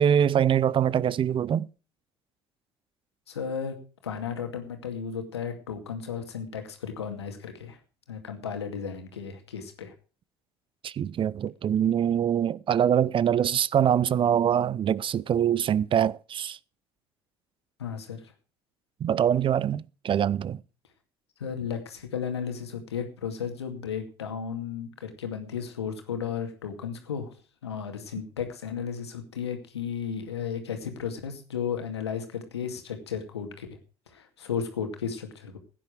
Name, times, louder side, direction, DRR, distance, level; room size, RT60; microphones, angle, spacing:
voice 1, 0.0-1.7 10.8-16.6 19.0-20.6, right 9 dB, 40° right, 0.6 m, -24 dB
voice 2, 3.3-3.8 4.0-7.8 8.1-9.9 17.8-18.3 21.4-27.4 27.6-33.7 34.1-35.6, left 7 dB, 85° left, 2.3 m, -34 dB
16.0 x 9.9 x 4.8 m
hypercardioid pair, 60°, 13 cm